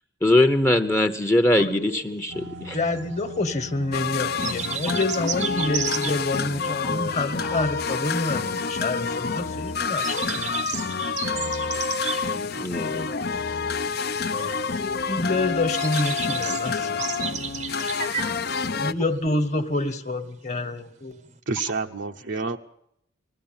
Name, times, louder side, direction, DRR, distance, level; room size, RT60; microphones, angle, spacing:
voice 1, 0.2-2.8 6.8-6.9 7.5-7.6 12.6-13.2 18.2-18.3 18.6-18.7, left 1 dB, 15° left, 7 dB, 0.8 m, -22 dB
sound 1, 1.9-21.4, right 7 dB, 35° right, 0.8 m, -35 dB
sound 2, 2.3-19.5, equal, 90° right, 1.5 m, -47 dB
voice 2, 2.7-10.5 15.1-17.0 18.8-21.2, left 2 dB, 35° left, 11 dB, 1.4 m, -27 dB
sound 3, 3.9-18.9, left 5 dB, 55° left, 0.7 m, -28 dB
voice 3, 21.5-22.6, right 4 dB, 70° right, 3 dB, 0.9 m, -28 dB
20.5 x 15.0 x 8.8 m, 0.75 s
head